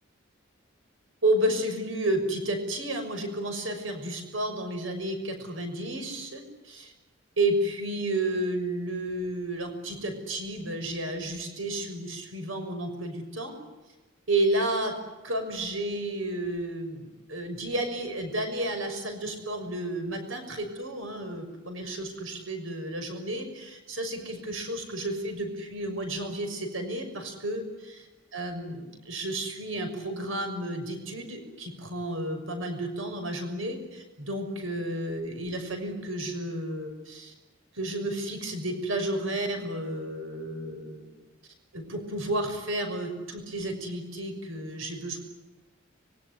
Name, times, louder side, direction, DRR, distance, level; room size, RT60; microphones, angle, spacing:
voice 1, 1.2-6.9 7.4-13.5 14.3-14.9 15.2-37.3 37.7-41.1 41.7-45.2, right 1 dB, 90° right, 6 dB, 6.2 m, -31 dB
26.0 x 22.5 x 9.8 m, 1.1 s
head